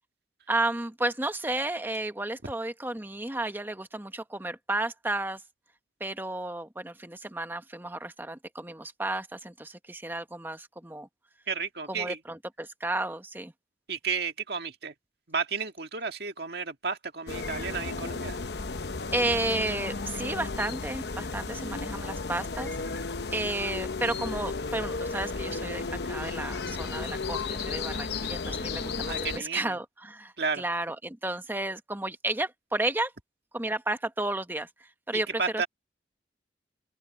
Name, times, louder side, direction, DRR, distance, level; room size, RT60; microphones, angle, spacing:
voice 1, 0.5-5.4 6.0-11.1 11.9-13.5 19.1-23.0 23.3-33.1 33.5-35.7, right 2 dB, 10° right, 1.1 m, -32 dB
voice 2, 11.5-12.2 13.9-14.9 15.3-18.4 29.1-29.8 30.4-30.6 35.1-35.7, right 5 dB, 65° right, 1.9 m, -32 dB
sound 1, 17.3-29.4, left 4 dB, 65° left, 0.9 m, -34 dB
head